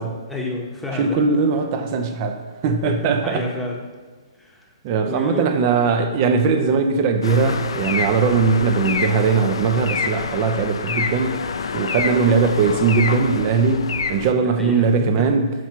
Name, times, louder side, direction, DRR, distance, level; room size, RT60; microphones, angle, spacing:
voice 1, 0.0-1.3 2.8-3.9 4.4-4.7 5.0-5.6 14.3-15.3, left 2 dB, 5° left, -2 dB, 1.1 m, -30 dB
voice 2, 1.0-3.4 4.8-11.4 11.7-15.5, right 5 dB, 40° right, 6 dB, 0.7 m, -20 dB
sound 1, 7.2-14.3, left 5 dB, 75° left, 0.4 m, -27 dB
7.0 x 4.6 x 4.5 m, 1.4 s
hypercardioid pair, 125°, 3 cm